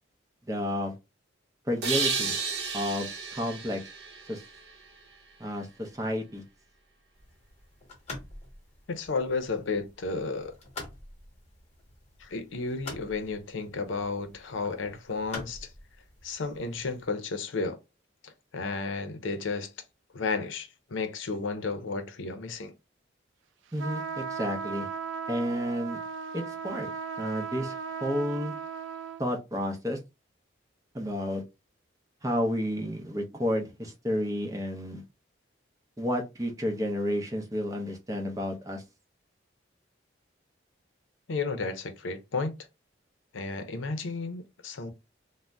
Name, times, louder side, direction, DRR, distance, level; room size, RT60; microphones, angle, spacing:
voice 1, 0.5-0.9 1.7-2.4 2.7-3.8 4.3-4.4 5.4-6.4 23.7-24.9 25.3-26.0 26.3-26.9 27.2-27.8 28.0-28.5 29.2-30.0 30.9-31.4 32.2-35.0 36.0-38.8, equal, 15° right, 0.5 m, -31 dB
sound 1, 1.8-5.3, right 5 dB, 55° right, 0.7 m, -33 dB
sound 2, 7.1-17.1, left 3 dB, 35° left, 1.0 m, -47 dB
voice 2, 8.9-10.6 12.2-15.7 16.2-17.8 18.2-19.7 20.1-22.7 41.3-42.6 43.3-44.9, left 4 dB, 85° left, 0.6 m, -33 dB
sound 3, 23.8-29.2, right 6 dB, 75° right, 0.3 m, -36 dB
2.5 x 2.0 x 3.3 m
head